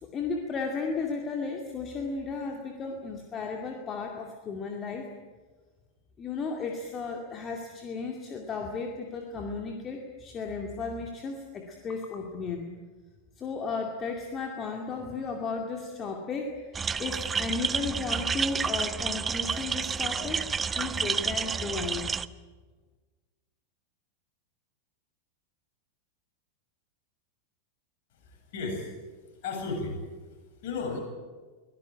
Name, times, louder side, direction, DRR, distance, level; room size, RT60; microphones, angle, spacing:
voice 1, 0.0-5.1 6.2-12.7 13.4-20.4 20.7-22.1, left 4 dB, 25° left, 2 dB, 2.4 m, -34 dB
sound 1, 16.7-22.2, right 6 dB, 20° right, 0.7 m, -30 dB
voice 2, 28.1-28.9 29.4-30.0 30.6-31.0, left 4 dB, 50° left, 2 dB, 7.9 m, -34 dB
24.0 x 17.5 x 9.0 m, 1.3 s
figure-of-eight pair, 90°, 0 cm